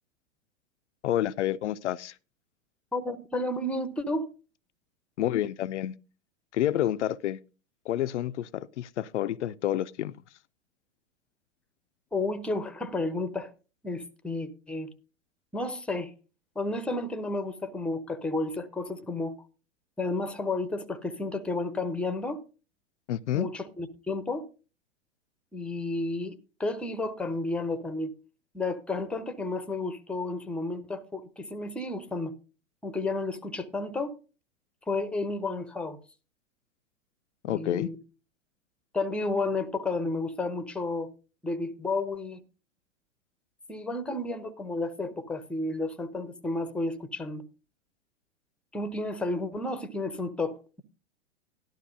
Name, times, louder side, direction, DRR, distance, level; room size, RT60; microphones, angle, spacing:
voice 1, 1.0-2.2 5.2-6.0 6.5-7.4 7.9-10.1 23.1-23.5 37.4-37.9, left 12 dB, 65° left, 0.5 m, -29 dB
voice 2, 2.9-4.3 12.1-13.5 13.8-14.9 15.5-16.1 16.5-19.5 20.0-22.4 23.3-24.4 25.5-28.1 28.5-32.3 32.8-34.2 34.8-36.0 37.5-38.0 38.9-41.1 41.4-42.4 43.7-47.5 48.7-50.8, left 2 dB, 5° left, 0.7 m, -32 dB
12.0 x 12.0 x 2.6 m
figure-of-eight pair, 100°, 37 cm